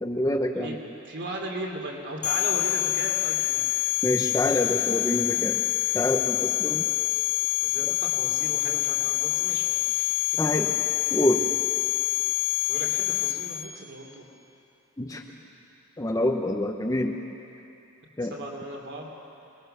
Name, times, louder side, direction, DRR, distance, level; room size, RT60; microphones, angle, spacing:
voice 1, 0.0-0.8 4.0-5.6 5.9-6.9 10.4-10.7 11.1-11.4 15.0-15.2 16.0-17.2 18.2-18.3, left 1 dB, 15° left, 2 dB, 0.9 m, -26 dB
voice 2, 1.1-3.6 7.6-10.6 12.7-14.2 15.1-15.4 18.3-19.1, right 1 dB, 50° right, 1 dB, 3.3 m, -37 dB
sound 1, 2.2-13.6, left 16 dB, 80° left, 2.8 m, -26 dB
27.5 x 20.0 x 6.8 m, 2.8 s
head